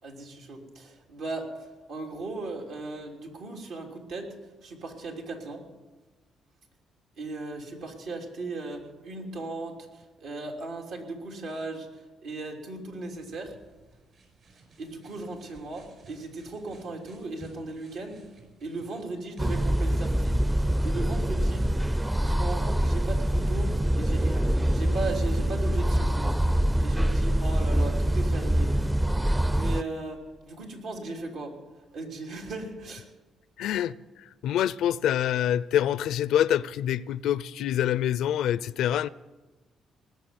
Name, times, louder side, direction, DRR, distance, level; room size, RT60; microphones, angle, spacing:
voice 1, 0.0-1.5 1.9-4.3 4.6-5.6 7.2-9.8 10.2-11.9 12.2-13.5 14.8-18.2 18.6-20.4 20.8-21.7 22.2-26.3 26.8-28.7 29.1-29.2 29.5-31.5 31.9-33.0, right 2 dB, 80° right, 3.3 m, -37 dB
sound 1, 13.0-19.5, right 3 dB, 50° right, 5.5 m, -55 dB
sound 2, 19.4-29.8, right 1 dB, 10° right, 0.5 m, -25 dB
voice 2, 33.6-33.9 34.4-39.1, left 11 dB, 80° left, 0.4 m, -26 dB
20.0 x 6.8 x 9.6 m
cardioid pair, 90°, 0 cm